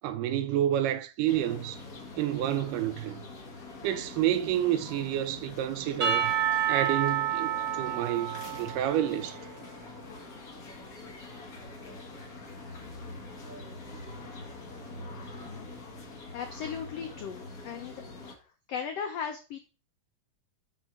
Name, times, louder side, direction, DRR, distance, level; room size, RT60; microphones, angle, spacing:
voice 1, 0.0-1.8 2.2-3.2 3.8-6.3 6.7-9.4, right 11 dB, 80° right, 2.2 m, -29 dB
sound 1, 1.3-18.3, left 3 dB, 65° left, 0.8 m, -44 dB
Percussion / Church bell, 6.0-9.7, right 9 dB, 55° right, 0.9 m, -29 dB
voice 2, 16.3-17.9 18.7-19.6, left 7 dB, 80° left, 1.4 m, -36 dB
6.2 x 4.1 x 6.0 m
omnidirectional pair, 3.8 m